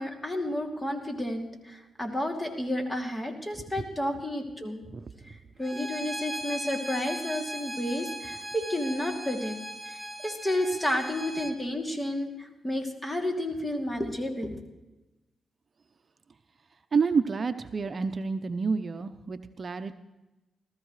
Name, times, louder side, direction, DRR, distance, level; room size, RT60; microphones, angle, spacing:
voice 1, 0.0-4.8 5.3-9.6 9.9-14.6, left 1 dB, 20° left, 3 dB, 2.8 m, -31 dB
Bowed string instrument, 5.6-11.6, right 1 dB, 10° right, 1.9 m, -38 dB
voice 2, 16.9-19.9, right 5 dB, 50° right, 10 dB, 0.7 m, -29 dB
19.0 x 14.0 x 3.2 m, 1.0 s
cardioid pair, 60°, 0 cm